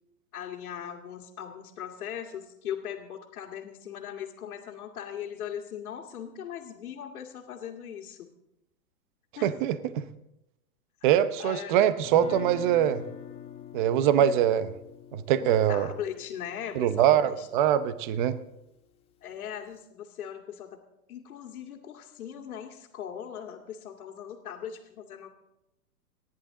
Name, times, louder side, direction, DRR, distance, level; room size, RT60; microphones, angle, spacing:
voice 1, 0.3-8.3 9.4-9.6 11.4-11.9 14.2-14.3 15.4-17.5 19.2-20.7 21.1-25.3, left 9 dB, 65° left, -1 dB, 2.1 m, -39 dB
voice 2, 9.4-10.0 11.0-13.0 13.7-14.7 15.1-15.9 16.8-18.4, right 10 dB, 30° right, 14 dB, 0.8 m, -23 dB
Guitar, 12.0-18.2, left 8 dB, 10° left, 1.7 m, -45 dB
29.5 x 10.5 x 3.8 m, 0.88 s
hypercardioid pair, 145°, 47 cm